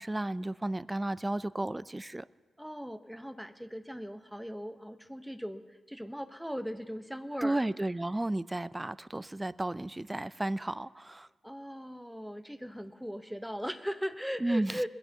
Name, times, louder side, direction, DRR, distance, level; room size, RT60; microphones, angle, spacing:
voice 1, 0.0-2.2 7.4-11.3 14.4-14.7, right 1 dB, 15° right, 17 dB, 0.3 m, -33 dB
voice 2, 2.6-7.6 11.4-14.9, equal, ahead, 10 dB, 0.7 m, -39 dB
21.0 x 16.0 x 2.7 m, 1.3 s
cardioid pair, 70°, 0 cm